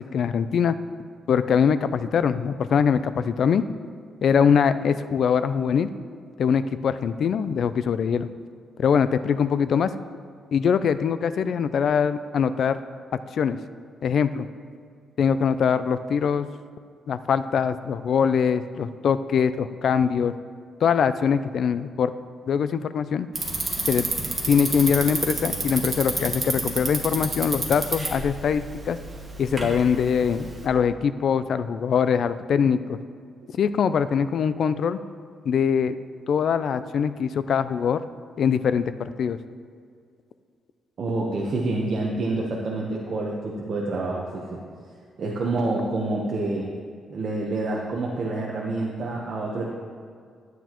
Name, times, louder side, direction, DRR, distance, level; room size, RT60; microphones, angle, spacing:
voice 1, 0.1-0.8 1.3-3.6 4.2-5.9 6.4-8.3 8.8-9.9 10.5-12.8 13.3-13.6 14.0-14.5 15.2-16.5 17.1-20.3 20.8-22.1 22.5-23.3 23.9-24.1 24.5-29.0 29.4-33.0 33.6-35.0 35.5-36.0 36.3-38.0 38.4-39.4, left 7 dB, 55° left, 13 dB, 0.3 m, -22 dB
Bicycle, 23.3-30.7, right 2 dB, 25° right, 1.5 m, -30 dB
voice 2, 41.0-44.6 45.2-46.7 47.1-49.7, right 2 dB, 45° right, -2 dB, 0.9 m, -27 dB
12.0 x 9.2 x 3.0 m, 2.2 s
cardioid pair, 145°, 0 cm